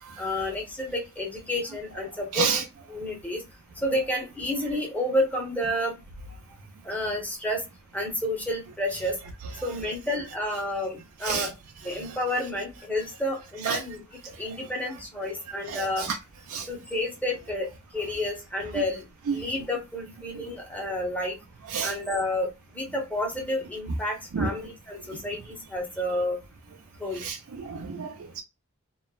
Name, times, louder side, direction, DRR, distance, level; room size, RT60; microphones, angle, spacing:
voice 1, 0.2-2.6 2.9-3.4 3.8-5.9 6.8-7.6 7.9-9.2 9.6-11.5 11.8-14.0 14.4-16.1 16.7-17.7 17.9-21.4 21.8-26.4 27.0-27.2, left 1 dB, 5° left, 0.9 m, -30 dB
voice 2, 2.3-2.6 11.2-11.5 13.6-13.8 15.7-16.2 16.5-16.7 19.3-19.4 21.7-21.9 24.3-24.5 27.2-28.4, right 6 dB, 70° right, 0.4 m, -29 dB
3.0 x 2.1 x 2.3 m
head